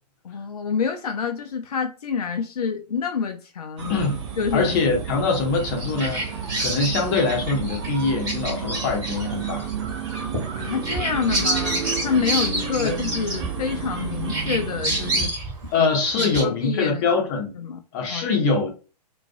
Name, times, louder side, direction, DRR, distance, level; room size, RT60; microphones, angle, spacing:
voice 1, 0.2-4.0 4.4-4.8 10.5-15.3 15.8-15.9 16.2-17.0 17.5-17.8 18.1-18.3, left 6 dB, 65° left, 0.4 m, -27 dB
sound 1, 3.8-15.3, right 7 dB, 45° right, 0.6 m, -31 dB
voice 2, 4.5-9.7 12.2-12.3 12.8-12.9 15.7-17.5 17.9-18.7, left 4 dB, 25° left, 0.6 m, -23 dB
Bird vocalization bird call bird song, 5.5-14.0 14.3-16.4, right 1 dB, 20° right, 1.1 m, -29 dB
2.4 x 2.2 x 2.5 m
figure-of-eight pair, 120°, 21 cm